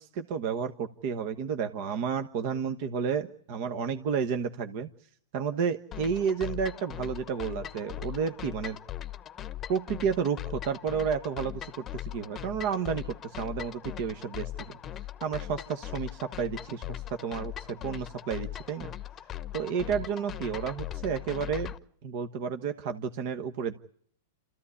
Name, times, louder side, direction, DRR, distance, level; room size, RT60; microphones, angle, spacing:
voice 1, 0.0-4.9 5.3-8.8 9.7-14.8 15.2-18.9 19.5-21.7 22.0-23.7, right 6 dB, 50° right, 9 dB, 1.3 m, -31 dB
sound 1, 5.9-21.8, left 12 dB, 25° left, 1.0 m, -40 dB
27.5 x 14.5 x 9.9 m, 0.65 s
hypercardioid pair, 135°, 0 cm